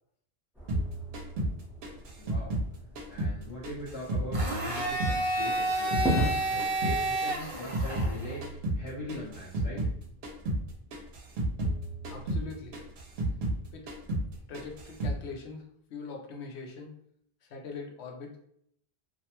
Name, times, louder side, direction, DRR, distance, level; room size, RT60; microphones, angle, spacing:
sound 1, 0.5-6.6, equal, ahead, 0.6 m, -37 dB
sound 2, 0.7-3.4 3.6-6.3 6.6-10.0 10.2-10.6 10.9-13.6 13.9-14.3 14.5-15.2, right 1 dB, 75° right, 0.8 m, -32 dB
voice 1, 2.1-2.6 3.1-9.8, left 1 dB, 40° left, -8 dB, 0.7 m, -41 dB
Domestic sounds home sounds, 4.3-8.4, right 1 dB, 45° right, 0.5 m, -30 dB
voice 2, 12.1-12.7 13.7-13.9 14.5-16.9 17.4-18.4, left 4 dB, 90° left, 2 dB, 0.8 m, -42 dB
2.4 x 2.1 x 2.8 m, 0.67 s
omnidirectional pair, 1.1 m